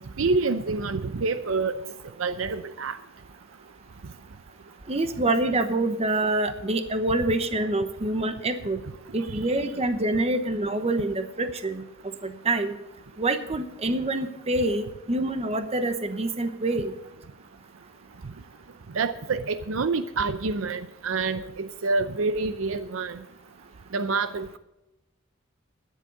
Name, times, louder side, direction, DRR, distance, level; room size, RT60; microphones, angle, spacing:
voice 1, 0.2-1.7 2.2-3.0 9.4-9.5 18.9-23.2 23.9-24.6, right 4 dB, 80° right, 11 dB, 0.6 m, -27 dB
voice 2, 4.9-8.8 9.1-11.8 12.2-12.7 13.2-16.9, right 2 dB, 30° right, 9 dB, 1.0 m, -26 dB
12.5 x 10.5 x 5.4 m, 0.93 s
head